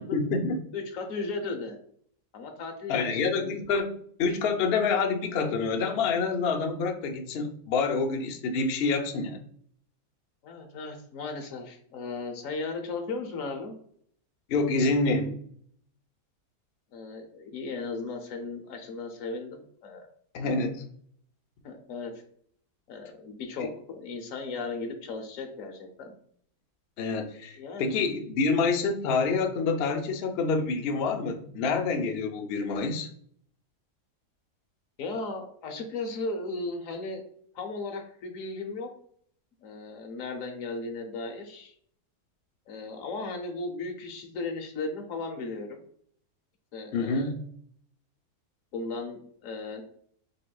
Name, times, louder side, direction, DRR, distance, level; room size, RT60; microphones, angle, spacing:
voice 1, 0.0-0.6 2.9-3.9 4.2-9.4 14.5-15.4 20.3-20.9 23.6-23.7 27.0-33.1 46.9-47.4, left 4 dB, 85° left, 0.5 m, -27 dB
voice 2, 0.7-1.8 2.3-3.3 10.4-13.8 16.9-20.1 20.4-20.7 21.6-22.1 22.9-26.1 27.6-27.9 35.0-37.2 37.5-38.9 39.6-41.7 42.7-45.8 46.7-47.3 48.7-49.8, left 3 dB, 60° left, 1.1 m, -36 dB
5.1 x 3.5 x 2.3 m
omnidirectional pair, 1.7 m